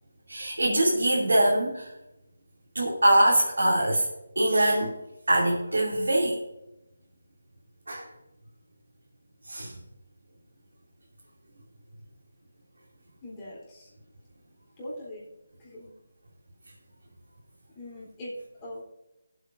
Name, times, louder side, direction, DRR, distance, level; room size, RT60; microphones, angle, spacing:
voice 1, 0.3-1.9 2.7-4.1 4.3-5.0 5.3-6.4 7.9-8.1 9.4-9.7, right 1 dB, 90° right, -4 dB, 2.8 m, -23 dB
voice 2, 13.2-13.9 14.8-15.2 15.6-15.9 17.7-18.8, left 1 dB, 20° left, -7 dB, 3.5 m, -41 dB
19.5 x 8.0 x 2.6 m, 0.90 s
figure-of-eight pair, 165°, 0 cm